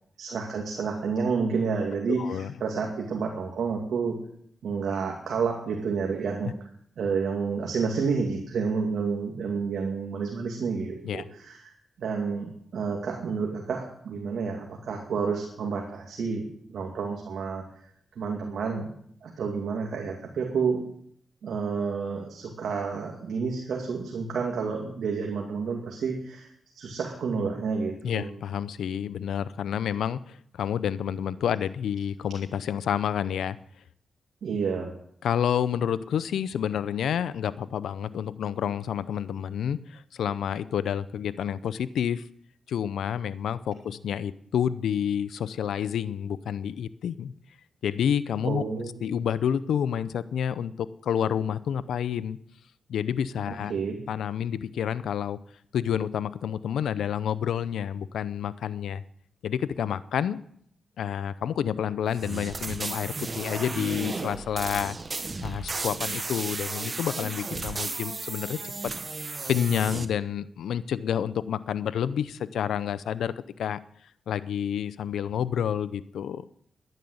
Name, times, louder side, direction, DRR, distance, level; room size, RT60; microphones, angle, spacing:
voice 1, 0.2-4.2 4.6-6.5 7.0-11.7 12.0-17.6 18.2-18.9 19.2-20.8 21.4-26.5 26.8-28.3 34.4-34.9 48.4-49.1 53.5-54.0, right 5 dB, 80° right, 1 dB, 2.3 m, -30 dB
voice 2, 2.1-2.5 11.0-11.2 28.0-33.6 35.2-42.2 42.7-47.3 47.8-48.6 49.0-52.4 52.9-53.7 54.1-55.4 55.7-59.0 59.4-60.4 61.0-65.0 65.4-68.7 69.5-73.3 73.6-73.8 74.3-76.4, left 9 dB, 90° left, 16 dB, 0.6 m, -29 dB
sound 1, 62.1-70.1, right 3 dB, 40° right, 1.2 m, -34 dB
11.0 x 11.0 x 7.9 m, 0.67 s
cardioid pair, 70°, 0 cm